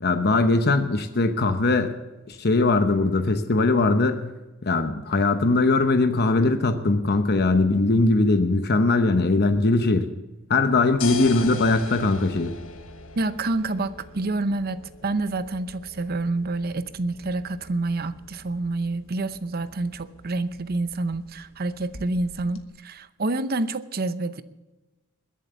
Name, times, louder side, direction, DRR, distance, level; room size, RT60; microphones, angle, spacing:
voice 1, 0.0-1.9 2.3-4.3 4.6-10.1 10.5-12.5, left 3 dB, 50° left, 8 dB, 0.9 m, -21 dB
sound 1, 10.5-22.6, left 4 dB, 70° left, 1.4 m, -42 dB
voice 2, 13.2-24.4, right 2 dB, 45° right, 13 dB, 0.7 m, -28 dB
21.5 x 7.5 x 7.0 m, 1.1 s
head